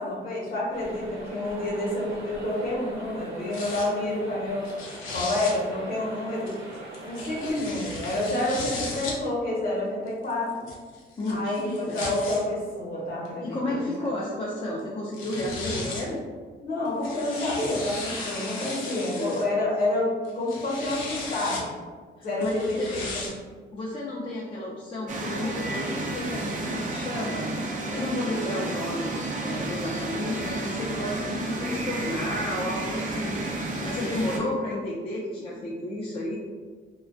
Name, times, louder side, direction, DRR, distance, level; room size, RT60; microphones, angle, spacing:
voice 1, 0.0-4.7 5.1-6.5 7.0-10.7 11.3-13.8 16.6-21.7 22.2-23.3, left 1 dB, 45° left, -4 dB, 0.9 m, -28 dB
sound 1, 0.7-7.5, right 2 dB, 85° right, 0.8 m, -42 dB
sound 2, 3.5-3.9 4.6-5.5 6.5-9.2 10.1-12.4 13.3-13.4 14.8-14.9 15.1-16.1 16.9-19.4 20.2-21.6 22.4-23.3, left 3 dB, 85° left, 0.6 m, -36 dB
voice 2, 11.2-12.0 13.4-16.2 19.1-19.4 22.2-23.0 23.7-27.5 27.9-33.4 33.8-36.4, left 1 dB, 25° left, -5 dB, 0.4 m, -32 dB
sound 3, 25.1-34.4, right 2 dB, 40° right, 0.5 m, -31 dB
2.3 x 2.2 x 2.4 m, 1.5 s
cardioid pair, 90°, 20 cm